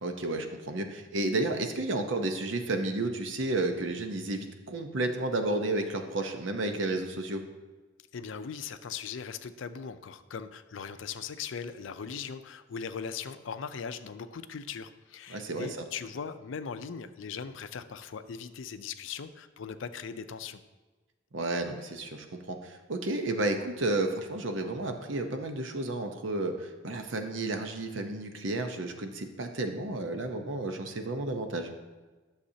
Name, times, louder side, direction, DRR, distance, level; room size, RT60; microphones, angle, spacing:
voice 1, 0.0-7.4 15.3-15.8 21.3-31.7, right 2 dB, 70° right, 6 dB, 0.8 m, -32 dB
voice 2, 8.1-20.6, left 6 dB, 75° left, 11 dB, 0.4 m, -39 dB
11.5 x 6.6 x 2.8 m, 1.3 s
head